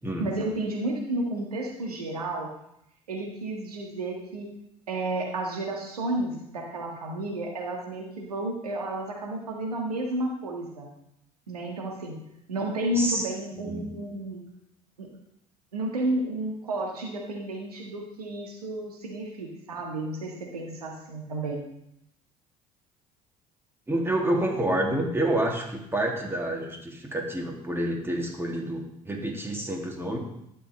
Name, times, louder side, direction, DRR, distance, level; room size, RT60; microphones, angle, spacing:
voice 1, 0.2-2.5 3.1-4.5 4.9-10.9 11.5-12.2 12.5-14.4 15.0-15.1 15.7-21.6, right 1 dB, 90° right, 0 dB, 1.6 m, -31 dB
voice 2, 12.9-13.9 23.9-30.2, right 1 dB, 10° right, 0 dB, 2.4 m, -28 dB
12.0 x 6.7 x 3.3 m, 0.78 s
hypercardioid pair, 60°, 19 cm